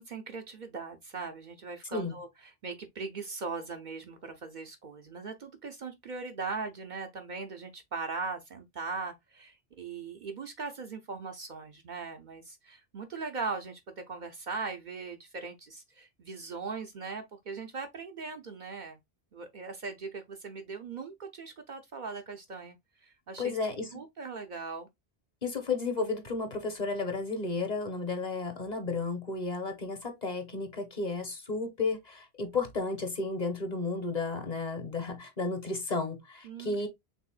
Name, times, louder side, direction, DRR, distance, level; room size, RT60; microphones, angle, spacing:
voice 1, 0.0-19.0 19.3-23.6 23.9-24.9 36.4-36.9, right 4 dB, 55° right, 0.7 m, -40 dB
voice 2, 23.4-23.9 25.4-36.9, left 3 dB, 40° left, 1.1 m, -33 dB
5.3 x 3.5 x 2.3 m
omnidirectional pair, 1.1 m